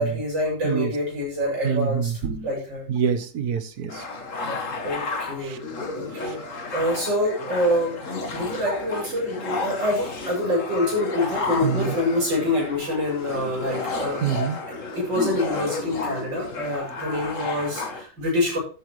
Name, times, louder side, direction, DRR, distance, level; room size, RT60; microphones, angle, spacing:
voice 1, 0.0-2.1 2.4-2.8 4.8-5.6 6.0-8.0 8.3-14.2 14.9-18.6, left 1 dB, 80° right, 7.6 m, -26 dB
voice 2, 1.6-2.5 2.9-4.0 5.4-5.6 6.2-6.3 11.6-11.9 14.2-14.6, right 7 dB, 60° right, 1.5 m, -26 dB
sound 1, 3.9-18.0, left 3 dB, 45° left, 1.8 m, -32 dB
13.0 x 9.0 x 3.2 m
omnidirectional pair, 2.0 m